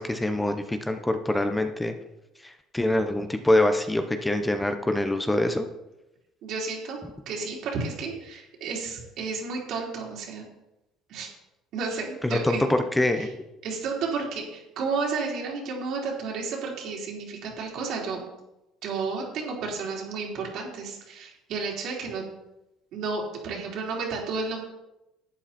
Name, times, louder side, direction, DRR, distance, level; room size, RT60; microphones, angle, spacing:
voice 1, 0.0-1.9 2.4-5.7 12.2-13.4, left 1 dB, 10° left, 7 dB, 1.0 m, -25 dB
voice 2, 6.4-7.0 7.3-10.4 11.1-11.3 11.7-12.6 13.2-13.3 13.6-18.2 18.8-22.2 22.9-24.6, right 4 dB, 65° right, -2 dB, 3.8 m, -32 dB
12.0 x 8.8 x 4.4 m, 0.94 s
cardioid pair, 100°, 0 cm